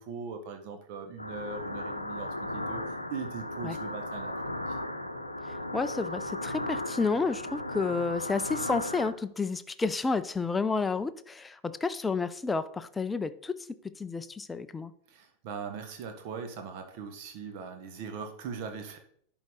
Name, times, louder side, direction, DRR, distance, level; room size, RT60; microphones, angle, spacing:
voice 1, 0.0-2.8 3.1-4.8 15.1-19.0, right 5 dB, 45° right, 6 dB, 1.3 m, -40 dB
sound 1, 1.2-9.1, left 1 dB, 85° left, 0.7 m, -36 dB
voice 2, 5.5-14.9, left 4 dB, 10° left, 12 dB, 0.5 m, -31 dB
10.5 x 4.0 x 4.7 m, 0.65 s
figure-of-eight pair, 90°, 0 cm